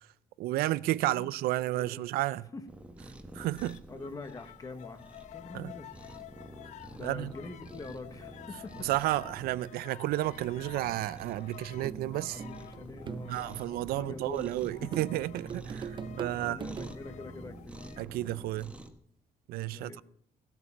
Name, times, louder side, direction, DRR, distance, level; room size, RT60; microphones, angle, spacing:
voice 1, 0.4-2.4 3.4-3.8 5.5-5.7 7.0-7.3 8.8-12.4 13.3-16.6 18.0-18.7 19.5-20.0, right 16 dB, 85° right, 0.4 m, -32 dB
voice 2, 1.7-2.1 2.5-2.6 3.9-5.9 6.9-8.9 12.3-14.9 16.3-17.8 19.6-20.0, left 3 dB, 25° left, 1.0 m, -45 dB
Cat, 2.7-18.9, right 1 dB, 10° right, 1.2 m, -49 dB
sound 1, 3.4-14.1 14.7-18.0, left 12 dB, 50° left, 0.5 m, -51 dB
sound 2, 11.8-14.2 14.9-16.9, right 6 dB, 30° right, 0.5 m, -41 dB
16.0 x 8.2 x 5.9 m
cardioid pair, 145°, 15 cm